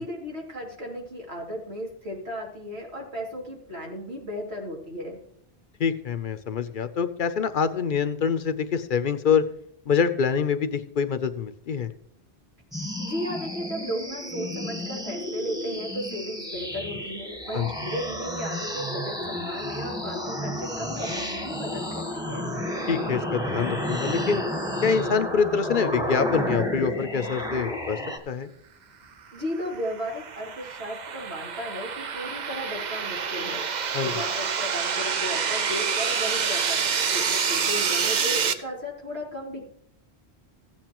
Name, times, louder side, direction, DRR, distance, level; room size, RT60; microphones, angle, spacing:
voice 1, 0.0-5.2 13.0-22.5 29.3-39.6, equal, 85° right, -2 dB, 2.9 m, -35 dB
voice 2, 5.8-9.5 9.9-11.9 17.5-17.7 22.9-24.4 24.8-28.0 28.3-28.5 33.9-34.1, left 6 dB, 55° left, 11 dB, 0.7 m, -25 dB
sound 1, 12.7-28.2, equal, 5° right, 1.1 m, -31 dB
sound 2, 29.6-38.5, right 6 dB, 50° right, 0.7 m, -27 dB
15.0 x 9.0 x 3.0 m, 0.70 s
omnidirectional pair, 1.1 m